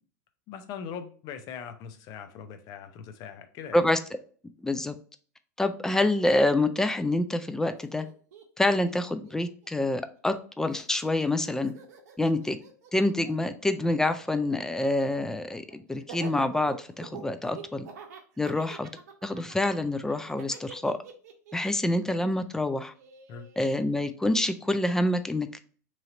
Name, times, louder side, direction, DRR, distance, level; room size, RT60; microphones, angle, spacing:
voice 1, 0.5-3.8 23.3-23.5, left 7 dB, 45° left, 8 dB, 0.6 m, -41 dB
voice 2, 4.6-4.9 5.6-8.1 8.6-11.7 12.2-12.6 12.9-17.9 18.4-18.9 19.2-21.0 21.5-22.9 23.6-25.6, left 2 dB, 5° left, 10 dB, 0.4 m, -27 dB
Laughter, 7.7-10.4 10.7-23.7, right 6 dB, 70° right, 0.7 m, -47 dB
3.1 x 2.8 x 3.7 m, 0.43 s
hypercardioid pair, 100°, 9 cm